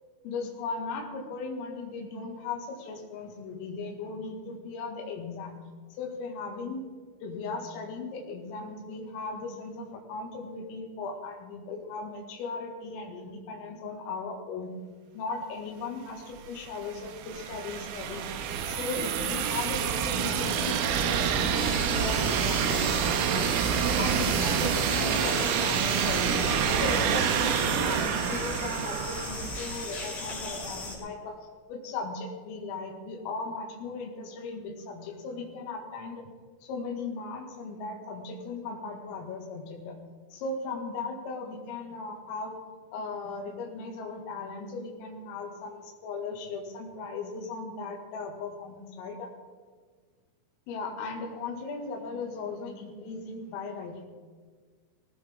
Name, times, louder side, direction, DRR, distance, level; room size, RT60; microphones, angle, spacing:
voice 1, 0.2-5.5 5.9-6.8 7.2-14.8 15.1-18.3 18.6-23.6 24.0-26.5 26.8-31.4 31.7-36.2 36.6-40.0 40.3-42.6 42.9-49.3 50.7-54.1, left 4 dB, 80° left, 0 dB, 4.5 m, -37 dB
sound 1, 16.4-30.1, right 7 dB, 85° right, 3.7 m, -27 dB
sound 2, 21.5-30.9, left 3 dB, 40° left, 4.3 m, -38 dB
19.5 x 17.0 x 3.6 m, 1.5 s
omnidirectional pair, 6.0 m